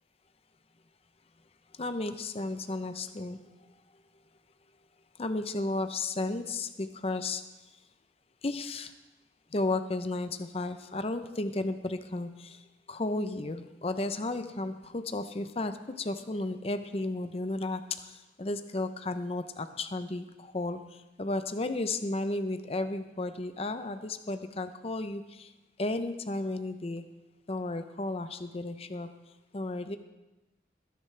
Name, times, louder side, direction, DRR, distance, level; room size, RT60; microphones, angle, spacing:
voice 1, 1.8-3.4 5.2-7.4 8.4-8.9 9.5-12.6 12.9-20.8 21.2-25.5 25.8-27.0 27.5-29.1 29.5-30.0, left 2 dB, 35° left, 9 dB, 0.6 m, -33 dB
20.0 x 10.0 x 3.3 m, 1.0 s
head